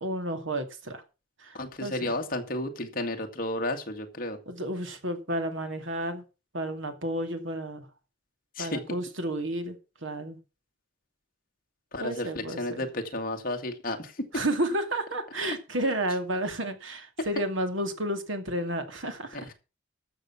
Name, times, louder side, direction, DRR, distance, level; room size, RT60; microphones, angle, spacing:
voice 1, 0.0-1.0 1.4-1.5 1.8-2.1 4.5-6.2 6.5-7.9 8.6-9.8 10.0-10.4 12.0-12.8 14.3-19.4, right 1 dB, 70° right, 7 dB, 2.4 m, -31 dB
voice 2, 1.5-4.4 8.6-8.8 11.9-14.4 17.2-17.3 19.3-19.5, left 1 dB, 45° left, 4 dB, 2.0 m, -32 dB
13.5 x 7.0 x 6.1 m, 0.31 s
head